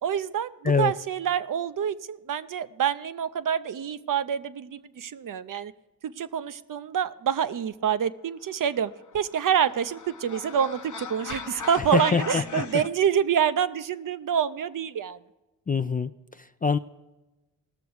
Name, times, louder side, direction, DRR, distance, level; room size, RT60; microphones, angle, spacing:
voice 1, 0.0-5.7 6.0-15.2, right 8 dB, 50° right, 13 dB, 0.6 m, -27 dB
sound 1, 9.0-12.9, left 6 dB, 45° left, 1.0 m, -38 dB
voice 2, 11.9-12.6 15.7-16.8, left 5 dB, 20° left, 11 dB, 0.4 m, -25 dB
18.0 x 6.8 x 4.8 m, 1.1 s
supercardioid pair, 55°, 42 cm